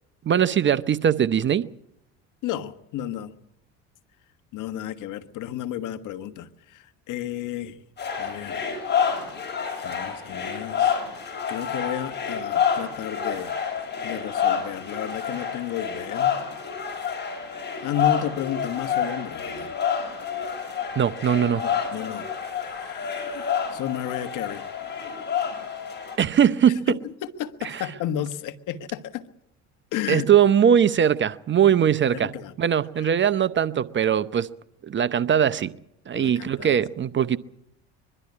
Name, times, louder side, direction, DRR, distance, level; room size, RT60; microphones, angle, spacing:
voice 1, 0.2-1.7 21.0-21.6 26.2-27.0 27.6-27.9 30.1-32.3 32.6-34.5 34.8-35.7 36.1-37.4, right 8 dB, 35° right, 0.7 m, -21 dB
voice 2, 2.4-3.3 4.5-7.8 8.2-8.6 9.1-9.3 9.8-10.9 11.2-13.6 14.0-16.4 17.8-19.7 21.6-22.3 22.6-24.6 26.9-27.0 27.4-29.3 29.9-30.3 32.1-32.5 33.0-33.1 36.1-36.8, left 10 dB, 60° left, 1.4 m, -33 dB
sound 1, 8.0-26.2, left 7 dB, 30° left, 6.2 m, -28 dB
22.5 x 12.0 x 9.6 m
supercardioid pair, 85°, 35 cm